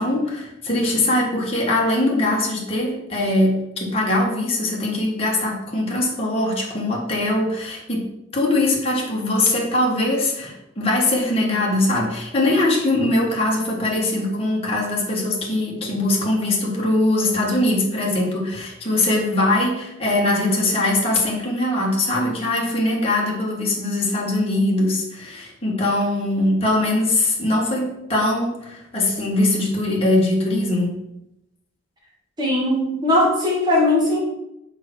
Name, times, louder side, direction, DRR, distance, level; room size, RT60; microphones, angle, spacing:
voice 1, 0.0-8.0 8.3-31.0, left 1 dB, 30° left, -3 dB, 1.6 m, -21 dB
voice 2, 32.4-34.2, left 1 dB, 20° right, -4 dB, 2.0 m, -19 dB
5.4 x 4.5 x 6.1 m, 0.86 s
head